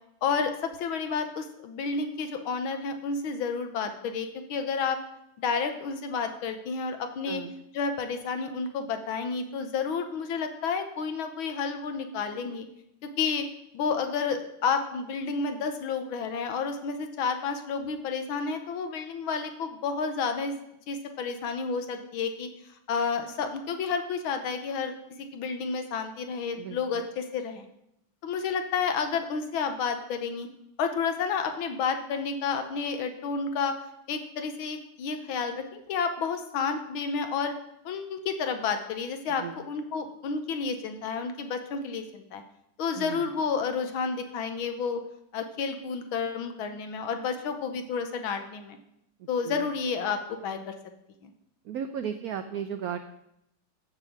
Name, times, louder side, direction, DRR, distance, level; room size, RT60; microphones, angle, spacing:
voice 1, 0.2-5.0 5.4-7.4 7.7-12.7 13.0-13.5 13.7-20.5 20.9-22.5 22.9-27.7 28.2-30.5 30.8-33.8 34.1-37.5 37.9-42.4 42.8-45.0 45.3-48.8 49.3-50.7 51.2-51.3, left 5 dB, 80° left, 7 dB, 1.7 m, -30 dB
voice 2, 26.6-27.0 39.4-39.6 43.0-43.3 49.4-49.7 51.6-53.0, right 8 dB, 80° right, 8 dB, 0.8 m, -35 dB
7.6 x 7.2 x 6.5 m, 0.80 s
omnidirectional pair, 2.2 m